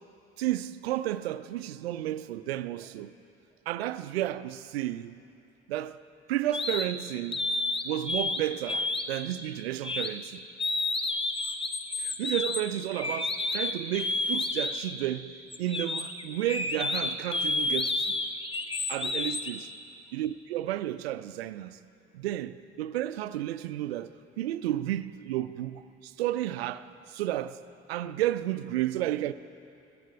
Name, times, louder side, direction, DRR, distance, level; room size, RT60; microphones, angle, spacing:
voice 1, 0.4-3.1 3.7-5.2 5.7-6.0 6.3-7.6 7.8-10.5 12.0-18.2 18.9-19.7 20.1-21.8 22.1-24.1 24.4-27.6 27.9-29.3, right 13 dB, 75° right, 0.5 m, -32 dB
sound 1, 6.5-6.9 7.3-8.4 8.7-9.2 9.8-10.1 10.6-14.9 15.5-19.5, left 2 dB, 15° left, 0.9 m, -30 dB
16.5 x 14.0 x 4.8 m
figure-of-eight pair, 45°, 31 cm